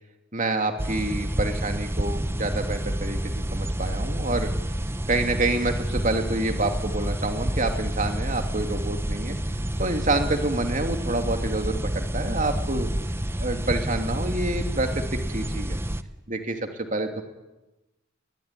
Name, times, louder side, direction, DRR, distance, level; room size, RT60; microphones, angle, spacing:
voice 1, 0.3-4.5 5.1-9.4 9.8-12.9 13.4-15.8 16.3-17.2, right 2 dB, 40° right, 5 dB, 2.7 m, -28 dB
sound 1, 0.8-16.0, right 1 dB, 10° right, 0.8 m, -29 dB
22.5 x 20.0 x 9.9 m, 1.0 s
head